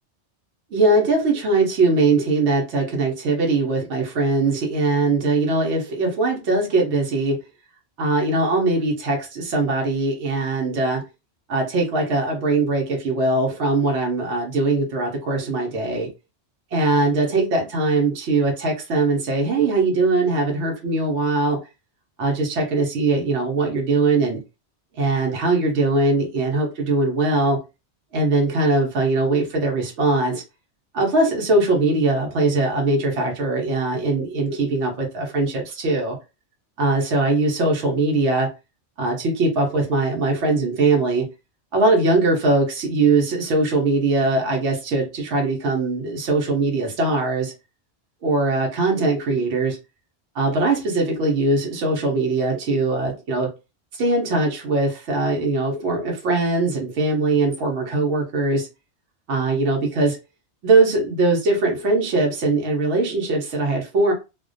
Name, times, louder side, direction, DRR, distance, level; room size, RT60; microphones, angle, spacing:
voice 1, 0.7-7.4 8.0-11.0 11.5-16.1 16.7-21.6 22.2-24.4 24.9-27.6 28.1-30.4 30.9-36.2 36.8-38.5 39.0-41.3 41.7-47.5 48.2-49.8 50.3-53.5 53.9-58.7 59.3-60.2 60.6-64.1, right 3 dB, 75° right, 0.9 m, -21 dB
2.4 x 2.1 x 2.4 m
omnidirectional pair, 1.2 m